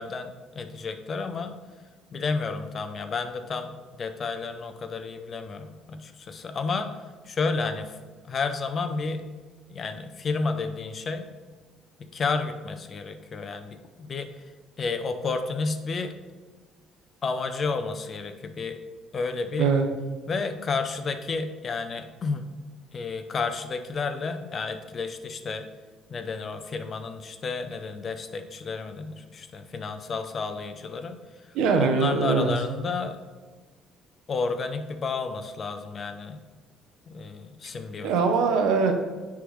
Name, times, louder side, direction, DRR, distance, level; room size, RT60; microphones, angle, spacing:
voice 1, 0.0-1.6 2.1-6.9 7.2-8.0 8.2-9.3 9.7-11.3 12.1-14.3 14.8-16.1 17.2-18.8 19.1-19.7 20.3-22.6 22.9-25.7 26.1-31.2 31.8-33.2 34.3-36.4 37.1-38.1, left 4 dB, 40° left, 8 dB, 0.6 m, -31 dB
voice 2, 31.5-32.5 38.0-38.9, right 5 dB, 85° right, 5 dB, 0.8 m, -22 dB
9.7 x 3.6 x 3.1 m, 1.4 s
cardioid pair, 100°, 0 cm